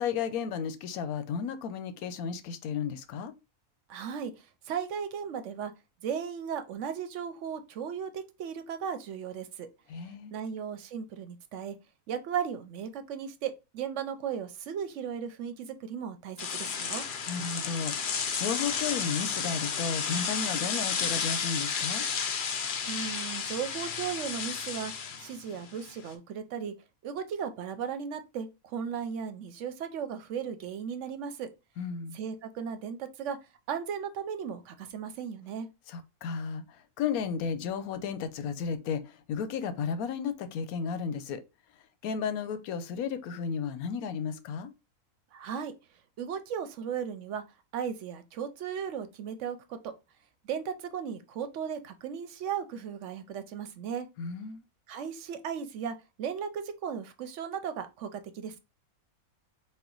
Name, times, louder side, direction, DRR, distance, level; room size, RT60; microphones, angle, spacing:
voice 1, 0.0-3.3 9.9-10.3 17.3-22.1 31.8-32.2 35.9-41.4 42.0-44.7 54.2-54.6, left 6 dB, 90° left, 1.1 m, -33 dB
voice 2, 3.9-5.7 6.0-9.7 10.3-11.8 12.1-17.0 22.9-24.9 25.2-26.7 27.0-31.5 32.1-33.4 33.7-35.7 45.3-45.7 46.2-47.4 47.7-49.9 50.4-54.1 54.9-58.6, right 7 dB, 65° right, 0.8 m, -36 dB
sound 1, 16.4-26.1, left 6 dB, 65° left, 0.5 m, -32 dB
4.3 x 2.2 x 3.7 m
omnidirectional pair, 1.5 m